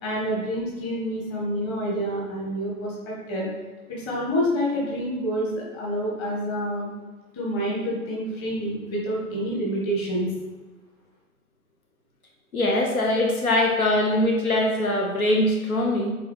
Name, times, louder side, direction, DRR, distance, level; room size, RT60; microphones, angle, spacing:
voice 1, 0.0-3.5 3.9-6.9 7.3-10.3, equal, 20° left, -5 dB, 1.8 m, -28 dB
voice 2, 12.5-16.1, left 1 dB, 70° left, 0 dB, 1.2 m, -22 dB
7.7 x 4.0 x 3.5 m, 1.2 s
figure-of-eight pair, 130°, 44 cm